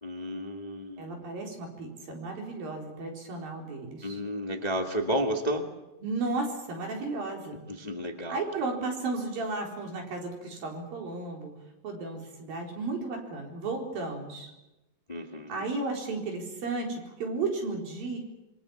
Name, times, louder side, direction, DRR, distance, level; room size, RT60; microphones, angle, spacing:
voice 1, 0.0-1.1 4.0-5.7 7.7-8.4 15.1-15.6, equal, 15° left, 3 dB, 1.4 m, -32 dB
voice 2, 1.0-4.2 6.0-7.6 8.3-11.5 11.8-14.5 15.5-18.2, right 3 dB, 85° right, 1 dB, 6.1 m, -34 dB
26.5 x 23.0 x 7.3 m, 0.99 s
omnidirectional pair, 4.0 m